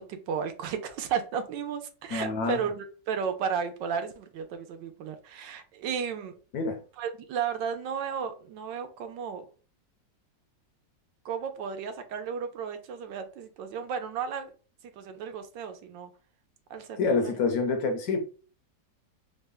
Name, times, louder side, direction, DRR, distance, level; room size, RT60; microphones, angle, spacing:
voice 1, 0.0-6.3 7.0-9.4 11.2-14.5 15.0-16.1 16.7-17.3, right 7 dB, 80° right, 1.3 m, -34 dB
voice 2, 2.1-2.6 6.5-6.8 17.0-18.2, left 4 dB, 70° left, 1.0 m, -27 dB
3.6 x 2.1 x 3.4 m
omnidirectional pair, 2.0 m